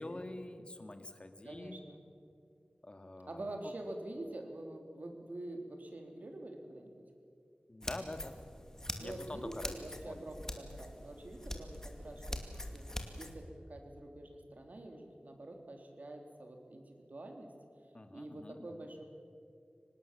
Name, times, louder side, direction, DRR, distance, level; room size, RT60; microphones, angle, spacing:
voice 1, 0.0-1.8 2.8-3.7 7.7-8.4 9.0-9.7 10.1-10.3 17.9-18.9, left 1 dB, 35° left, 8 dB, 1.9 m, -46 dB
voice 2, 1.4-2.0 3.3-7.0 8.9-12.4 12.7-12.9 13.2-17.5 18.1-19.0, right 1 dB, 60° right, 4 dB, 3.3 m, -46 dB
sound 1, 7.8-13.3, left 1 dB, 20° left, 2.4 m, -44 dB
25.0 x 19.0 x 7.5 m, 2.4 s
wide cardioid pair, 75°, 3 cm